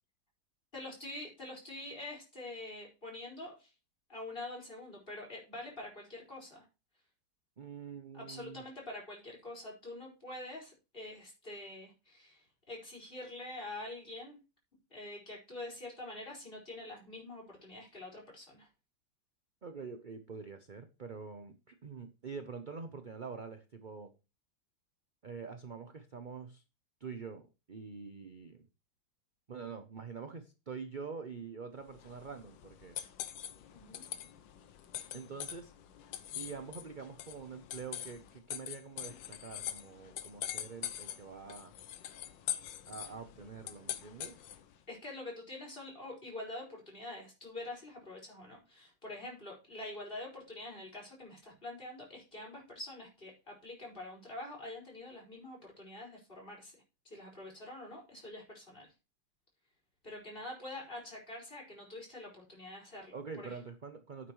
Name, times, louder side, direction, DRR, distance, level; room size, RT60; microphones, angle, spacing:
voice 1, 0.7-3.7 4.1-6.7 8.1-14.4 14.9-18.7 33.7-34.0 44.9-56.8 57.1-58.9 60.0-63.6, left 2 dB, 25° left, -1 dB, 5.5 m, -46 dB
voice 2, 7.6-8.6 19.6-24.1 25.2-26.6 27.0-28.7 29.5-33.0 35.1-35.7 36.2-41.7 42.9-44.5 63.1-64.3, right 5 dB, 45° right, 7 dB, 0.6 m, -45 dB
sound 1, 31.9-44.7, left 11 dB, 75° left, 1.5 m, -43 dB
11.0 x 9.1 x 3.1 m, 0.29 s
omnidirectional pair, 2.1 m